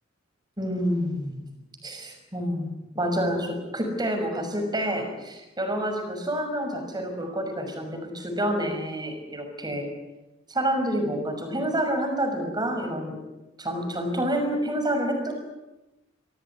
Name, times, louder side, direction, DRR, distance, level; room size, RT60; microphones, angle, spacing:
voice 1, 0.6-1.4 1.8-9.9 10.5-13.2 13.6-15.3, equal, 20° right, 4 dB, 6.1 m, -28 dB
26.0 x 17.5 x 9.7 m, 1.0 s
head